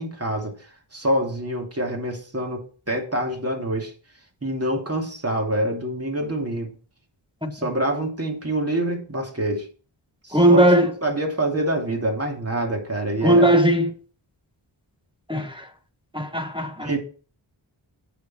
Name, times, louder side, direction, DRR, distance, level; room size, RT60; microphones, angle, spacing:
voice 1, 0.0-3.9 4.4-6.8 7.5-9.7 10.2-10.7 11.0-13.6 16.8-17.0, right 1 dB, 30° right, 2.7 m, -26 dB
voice 2, 10.3-10.9 13.2-13.9 15.3-15.7 16.1-16.9, right 1 dB, 10° right, 1.2 m, -18 dB
7.9 x 6.6 x 4.3 m
cardioid pair, 45°, 48 cm